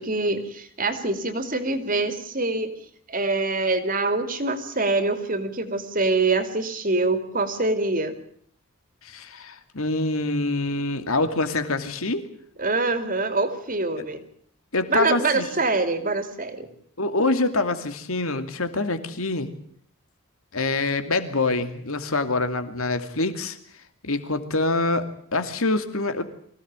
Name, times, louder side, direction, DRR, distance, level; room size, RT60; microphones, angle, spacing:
voice 1, 0.0-2.7 3.1-8.1 12.6-14.2 14.9-16.7, right 3 dB, 40° right, 9 dB, 2.8 m, -25 dB
voice 2, 9.0-12.3 14.7-15.5 17.0-19.5 20.5-23.6 24.0-26.2, left 2 dB, 70° left, 9 dB, 2.6 m, -25 dB
24.5 x 17.0 x 8.9 m, 0.64 s
head